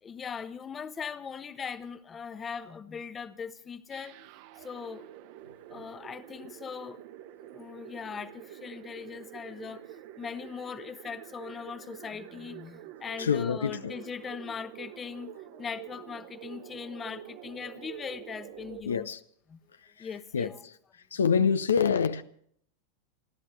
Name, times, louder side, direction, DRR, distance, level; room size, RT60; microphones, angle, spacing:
voice 1, 0.0-4.2 4.6-5.1 5.7-7.0 7.5-9.8 10.2-19.1 19.5-19.6 20.0-20.6, left 6 dB, 20° left, 1.0 m, -40 dB
sound 1, 3.9-18.8, right 12 dB, 45° right, 1.2 m, -47 dB
voice 2, 13.2-13.9 18.8-19.2 19.8-20.7 21.1-22.2, left 6 dB, 70° left, 0.7 m, -27 dB
29.5 x 13.0 x 3.3 m
figure-of-eight pair, 90°, 0 cm